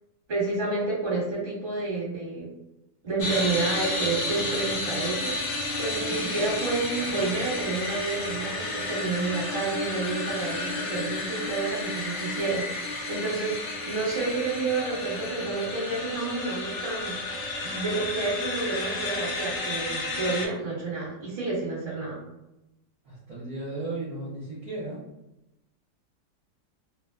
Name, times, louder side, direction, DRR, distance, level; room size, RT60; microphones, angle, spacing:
voice 1, 0.3-2.5 3.0-17.2 17.6-22.2, right 3 dB, 35° right, -6 dB, 1.1 m, -30 dB
sound 1, 3.2-20.5, left 2 dB, 80° left, 0.6 m, -32 dB
voice 2, 23.0-25.0, right 2 dB, 60° right, -7 dB, 1.0 m, -35 dB
2.8 x 2.2 x 2.2 m, 0.93 s
omnidirectional pair, 1.9 m